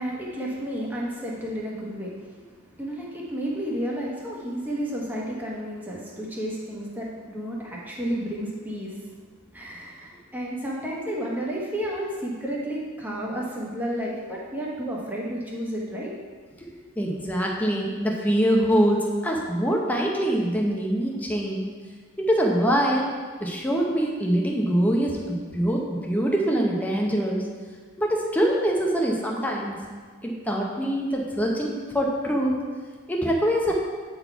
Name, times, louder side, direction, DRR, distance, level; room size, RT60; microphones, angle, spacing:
voice 1, 0.0-9.1 9.5-16.1 16.5-16.6, equal, 10° right, -5 dB, 1.2 m, -32 dB
voice 2, 17.0-21.7 22.2-23.1 23.4-27.5 28.0-29.8 30.2-32.5 33.1-33.7, equal, 5° left, -1 dB, 0.7 m, -24 dB
8.5 x 4.1 x 4.6 m, 1.5 s
head